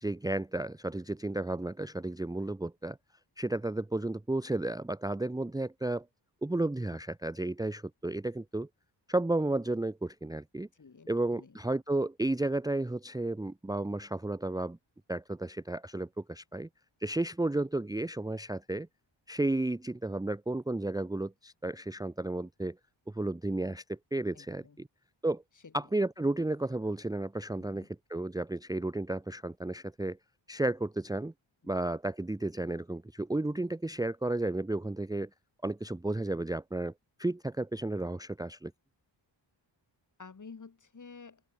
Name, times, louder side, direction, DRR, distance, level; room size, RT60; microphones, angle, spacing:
voice 1, 0.0-3.0 3.4-6.1 6.4-8.7 9.1-10.7 11.1-14.8 15.1-16.7 17.0-18.9 19.3-22.8 23.1-24.9 25.2-25.4 25.7-30.2 30.5-31.3 31.7-35.3 35.6-36.9 37.2-38.7, right 2 dB, 10° right, 0.7 m, -33 dB
voice 2, 10.7-11.6 24.3-24.8 25.6-25.7 27.6-27.9 40.2-41.4, left 5 dB, 40° left, 4.5 m, -51 dB
open air
wide cardioid pair, 155°, 45 cm